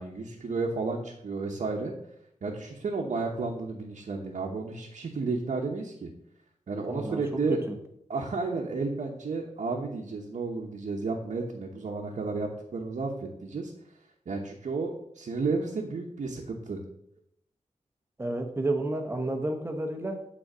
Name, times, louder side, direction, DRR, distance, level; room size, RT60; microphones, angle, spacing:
voice 1, 0.0-1.9 2.4-6.1 6.7-7.6 8.1-13.7 14.3-16.8, right 3 dB, 65° right, -1 dB, 1.1 m, -32 dB
voice 2, 6.9-7.2 7.5-7.8 18.2-20.3, right 2 dB, 20° right, 4 dB, 1.0 m, -31 dB
9.1 x 4.1 x 6.1 m, 0.74 s
wide cardioid pair, 160°, 13 cm